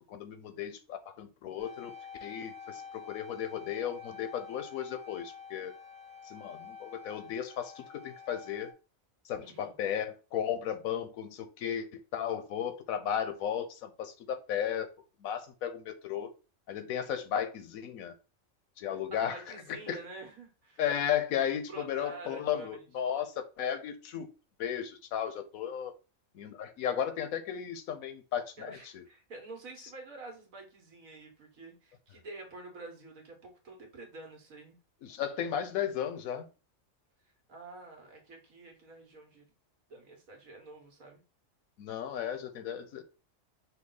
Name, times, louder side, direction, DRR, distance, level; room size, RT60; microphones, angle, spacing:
voice 1, 0.1-1.9 2.2-5.7 6.2-8.7 9.2-14.9 15.2-16.3 16.7-18.1 18.8-19.4 19.9-20.0 20.8-24.3 24.6-25.9 26.3-29.0 35.0-36.5 41.8-43.0, left 9 dB, 85° left, 1.1 m, -35 dB
sound 1, 1.6-8.7, left 6 dB, 65° right, 1.3 m, -48 dB
voice 2, 9.4-9.7 18.9-20.8 21.7-22.8 28.6-34.8 37.5-39.5 39.9-41.2, right 2 dB, 80° right, 1.7 m, -48 dB
5.6 x 2.4 x 3.9 m
omnidirectional pair, 1.4 m